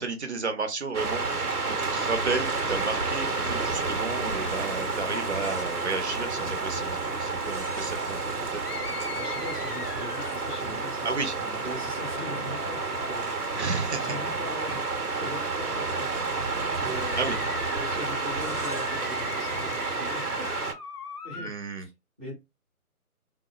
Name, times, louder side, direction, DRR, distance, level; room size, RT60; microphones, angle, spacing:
voice 1, 0.0-8.6 11.0-11.3 13.5-14.1 17.2-17.4 21.4-21.9, right 4 dB, 50° right, 0.7 m, -32 dB
sound 1, 0.9-20.7, right 3 dB, 90° right, 0.8 m, -30 dB
sound 2, 3.8-6.2 11.2-15.3 18.1-20.5, left 5 dB, 45° left, 0.5 m, -49 dB
sound 3, 8.6-10.7 16.8-21.5, left 5 dB, 85° left, 0.7 m, -40 dB
voice 2, 9.1-13.7 14.0-14.9 15.1-17.4 17.7-20.5 21.2-21.9 22.2-22.3, equal, 10° right, 0.8 m, -41 dB
3.4 x 2.0 x 2.4 m
figure-of-eight pair, 150°, 45 cm